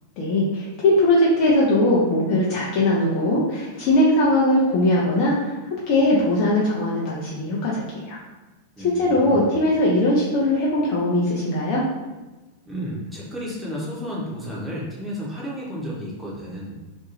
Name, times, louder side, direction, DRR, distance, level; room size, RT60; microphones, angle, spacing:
voice 1, 0.2-8.2 8.8-11.8, left 1 dB, 40° left, -6 dB, 0.6 m, -20 dB
voice 2, 8.8-9.5 12.7-16.8, equal, 5° right, -6 dB, 0.9 m, -32 dB
2.6 x 2.2 x 3.0 m, 1.1 s
figure-of-eight pair, 90°, 0 cm